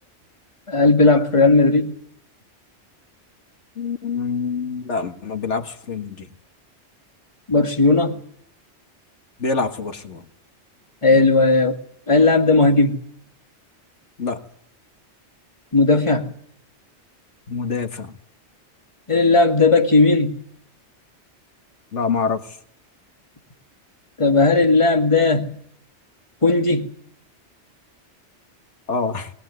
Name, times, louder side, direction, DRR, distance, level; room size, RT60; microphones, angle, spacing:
voice 1, 0.7-1.9 7.5-8.2 11.0-11.8 12.1-13.0 15.7-16.3 19.1-20.4 24.2-25.6 26.4-26.9, left 3 dB, 25° left, 4 dB, 2.1 m, -16 dB
voice 2, 3.8-6.3 9.4-10.2 14.2-14.4 17.5-18.1 21.9-22.4 28.9-29.3, left 4 dB, 90° left, 6 dB, 2.0 m, -25 dB
21.0 x 20.0 x 9.6 m, 0.67 s
omnidirectional pair, 1.2 m